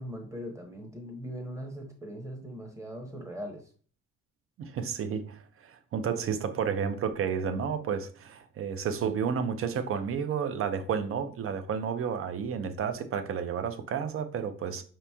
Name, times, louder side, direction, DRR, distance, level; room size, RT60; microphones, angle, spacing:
voice 1, 0.0-3.6, equal, 10° right, 0.8 m, -40 dB
voice 2, 4.6-14.8, right 7 dB, 45° right, 0.5 m, -31 dB
5.0 x 2.9 x 3.4 m
cardioid pair, 160°, 32 cm